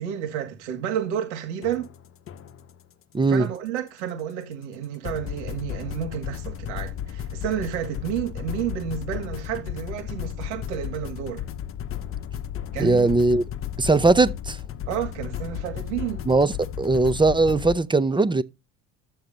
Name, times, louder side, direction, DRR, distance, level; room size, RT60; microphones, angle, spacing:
voice 1, 0.0-1.9 3.3-11.4 12.7-13.1 14.9-16.2, right 9 dB, 90° right, 2.2 m, -31 dB
sound 1, 1.6-2.8 5.0-17.8, left 10 dB, 40° left, 0.9 m, -34 dB
voice 2, 3.1-3.5 12.8-13.4 13.8-14.6 16.3-18.4, right 3 dB, 15° right, 0.7 m, -20 dB
12.0 x 7.1 x 4.0 m
supercardioid pair, 95°, 34 cm